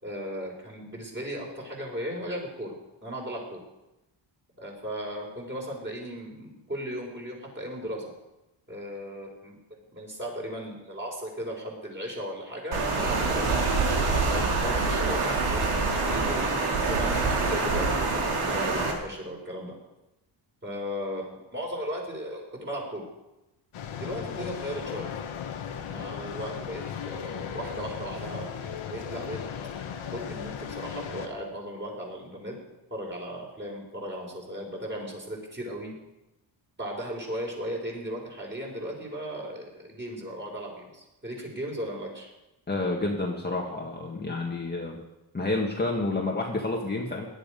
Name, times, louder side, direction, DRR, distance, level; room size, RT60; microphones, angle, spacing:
voice 1, 0.0-2.8 3.0-3.6 4.6-8.1 8.7-9.5 9.9-19.7 20.6-23.1 23.9-25.1 25.9-29.4 29.9-32.5 32.9-35.9 36.8-42.3, equal, 25° right, -2 dB, 5.7 m, -36 dB
Water, 12.7-18.9, right 3 dB, 80° right, 3.3 m, -25 dB
sound 1, 23.7-31.3, left 8 dB, 85° left, 1.7 m, -36 dB
voice 2, 42.7-45.0 45.3-47.3, left 2 dB, 20° left, -1 dB, 1.8 m, -29 dB
18.5 x 11.5 x 5.3 m, 0.96 s
cardioid pair, 115°, 48 cm